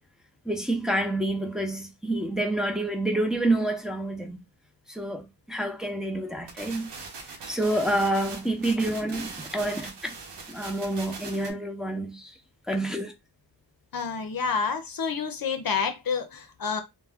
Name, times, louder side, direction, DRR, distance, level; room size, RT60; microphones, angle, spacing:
voice 1, 0.4-4.4 4.9-6.9 7.3-10.1 10.5-12.3 12.7-13.1, right 1 dB, ahead, 0.7 m, -28 dB
sound 1, 6.5-11.5, right 4 dB, 85° right, 0.8 m, -41 dB
voice 2, 13.9-16.8, left 6 dB, 55° left, 0.6 m, -29 dB
2.2 x 2.2 x 3.5 m
cardioid pair, 45°, 41 cm